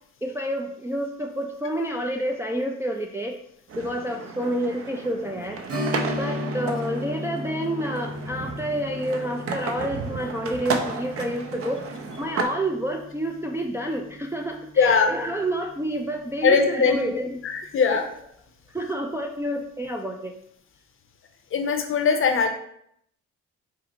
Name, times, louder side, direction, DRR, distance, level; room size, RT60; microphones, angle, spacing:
voice 1, 0.2-3.4 3.7-5.6 6.1-11.8 12.2-17.4 17.8-18.0 18.7-20.3, right 1 dB, 10° right, 1 dB, 0.3 m, -29 dB
sound 1, 3.7-12.4, right 4 dB, 50° right, 0.6 m, -33 dB
Strum, 5.7-14.9 15.2-15.3 17.8-18.0 18.5-18.6, left 1 dB, 85° right, 1.3 m, -35 dB
voice 2, 14.8-15.1 16.4-17.0 17.4-18.0 21.5-22.5, left 5 dB, 45° left, 5 dB, 0.6 m, -20 dB
4.6 x 2.0 x 3.8 m, 0.71 s
cardioid pair, 90°, 30 cm